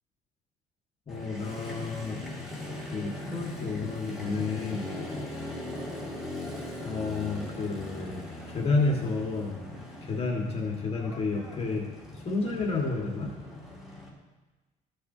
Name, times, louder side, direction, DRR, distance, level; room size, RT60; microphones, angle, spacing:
voice 1, 1.1-2.2 2.9-4.9 6.8-8.2 8.5-9.6 10.0-11.8 12.2-13.3, left 3 dB, 35° left, -1 dB, 1.6 m, -30 dB
Motorcycle, 1.1-14.1, left 2 dB, ahead, 2.2 m, -40 dB
14.5 x 6.5 x 2.7 m, 1.2 s
cardioid pair, 110°, 17 cm